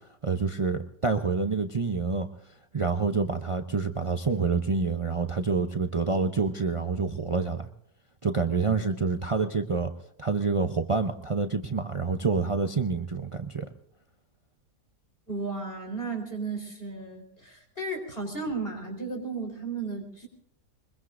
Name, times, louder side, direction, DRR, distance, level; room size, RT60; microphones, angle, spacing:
voice 1, 0.2-2.3 2.7-7.7 8.2-9.9 10.2-13.7, right 4 dB, 55° right, 6 dB, 0.3 m, -27 dB
voice 2, 15.3-20.3, right 3 dB, 35° left, 3 dB, 4.3 m, -34 dB
23.5 x 22.0 x 2.6 m, 0.73 s
omnidirectional pair, 1.8 m